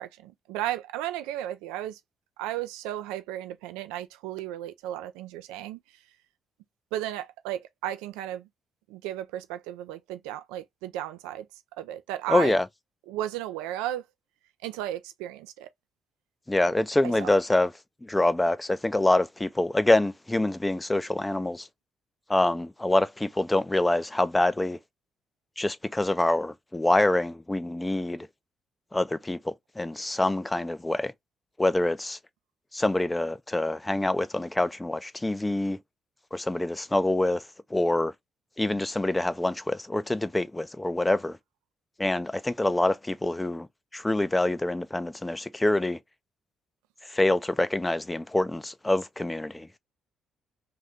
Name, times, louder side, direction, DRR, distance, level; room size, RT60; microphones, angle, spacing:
voice 1, 0.0-2.0 2.4-5.8 6.9-8.4 8.9-11.4 11.8-12.6 13.1-14.0 14.6-15.7 17.2-17.3, right 12 dB, 85° right, 0.4 m, -34 dB
voice 2, 12.3-12.7 16.5-17.7 18.0-21.7 22.3-24.8 25.6-28.3 28.9-31.1 31.6-32.2 32.7-35.8 36.3-37.4 37.7-38.1 38.6-41.4 42.0-43.7 43.9-46.0 47.1-49.8, left 2 dB, 15° left, 0.4 m, -25 dB
2.7 x 2.6 x 3.3 m
hypercardioid pair, 55°, 0 cm